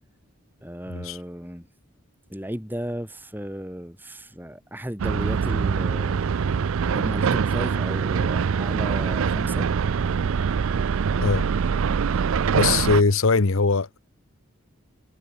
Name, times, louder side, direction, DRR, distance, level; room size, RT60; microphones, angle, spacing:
voice 1, 0.6-1.7 2.3-6.2 6.8-9.7, equal, 10° right, 4.2 m, -34 dB
sound 1, 5.0-13.0, right 6 dB, 70° right, 0.4 m, -24 dB
voice 2, 12.5-13.9, left 4 dB, 70° left, 0.9 m, -21 dB
head